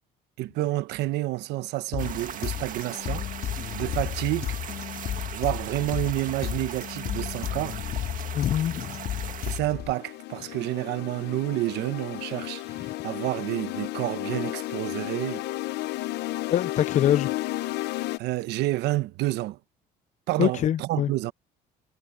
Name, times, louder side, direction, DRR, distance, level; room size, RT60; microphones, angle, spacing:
voice 1, 0.4-3.2 3.7-4.6 5.3-7.8 9.5-15.4 18.2-19.6 20.3-21.3, right 17 dB, 85° right, 1.0 m, -29 dB
sound 1, 1.9-9.9, left 11 dB, 65° left, 3.4 m, -33 dB
sound 2, 2.0-9.6, right 9 dB, 50° right, 1.9 m, -39 dB
voice 2, 8.3-8.9 12.8-12.9 16.5-17.3 20.4-21.1, left 11 dB, 45° left, 0.5 m, -24 dB
sound 3, 9.1-18.2, left 17 dB, 80° left, 0.8 m, -33 dB
cardioid pair, 110°, 17 cm